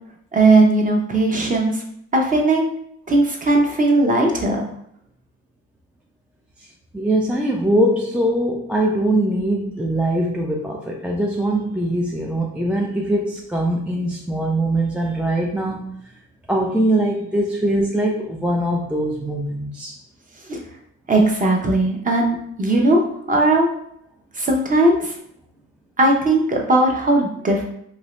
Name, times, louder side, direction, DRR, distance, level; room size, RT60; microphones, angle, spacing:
voice 1, 0.3-1.8 2.1-2.6 3.1-4.6 20.5-20.6 21.1-23.7 24.4-25.2 26.0-27.6, right 2 dB, 25° right, 1 dB, 0.7 m, -18 dB
voice 2, 6.9-15.9 16.5-20.0, right 1 dB, 5° right, -1 dB, 0.3 m, -22 dB
2.9 x 2.6 x 3.1 m, 0.70 s
cardioid pair, 100°, 31 cm